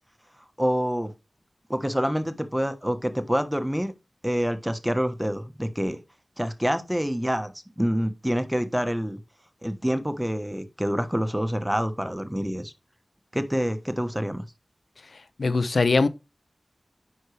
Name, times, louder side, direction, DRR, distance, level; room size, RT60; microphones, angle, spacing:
voice 1, 0.6-1.1 1.7-3.9 4.2-6.0 6.4-9.2 9.6-12.7 13.3-14.4, equal, 5° right, 1.2 m, -27 dB
voice 2, 15.4-16.1, left 3 dB, 75° left, 0.7 m, -21 dB
9.7 x 5.4 x 3.3 m
wide cardioid pair, 55°, 0 cm